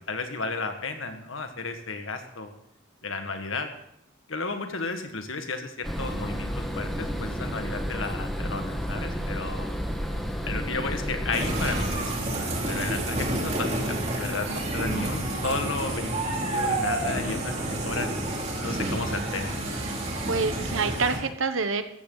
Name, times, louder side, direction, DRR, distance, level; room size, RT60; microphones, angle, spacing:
voice 1, 0.1-2.5 3.0-3.7 4.3-9.7 10.4-17.6 17.8-18.1 18.6-19.9, left 3 dB, 85° left, 6 dB, 1.8 m, -33 dB
sound 1, 5.8-11.9, equal, ahead, 1.4 m, -31 dB
sound 2, 11.3-21.2, right 1 dB, 35° right, 2.7 m, -29 dB
voice 2, 19.9-21.8, right 4 dB, 85° right, 10 dB, 1.1 m, -27 dB
15.5 x 14.0 x 4.0 m, 0.74 s
head